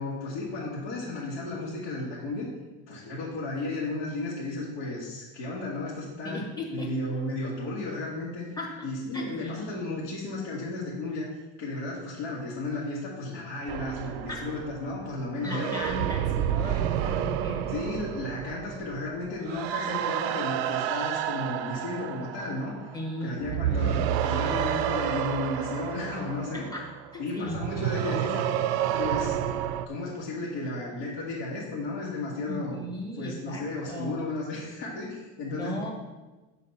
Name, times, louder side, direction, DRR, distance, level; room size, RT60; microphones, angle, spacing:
voice 1, 0.0-2.5 2.9-6.4 6.7-8.5 8.8-11.3 11.6-15.7 16.4-16.5 17.7-22.9 23.2-26.6 27.2-28.4 29.0-29.4 29.9-32.8 33.2-35.9, left 2 dB, 85° left, -8 dB, 2.0 m, -34 dB
voice 2, 6.2-6.9 8.6-9.8 14.3-14.4 15.4-17.7 22.9-24.1 26.5-26.8 27.1-27.6 32.5-34.2 35.5-35.9, left 1 dB, 10° left, -1 dB, 1.0 m, -37 dB
sound 1, 13.7-23.1 23.4-29.9, right 10 dB, 65° right, 0.4 m, -30 dB
7.4 x 4.1 x 5.6 m, 1.2 s
cardioid pair, 175°, 33 cm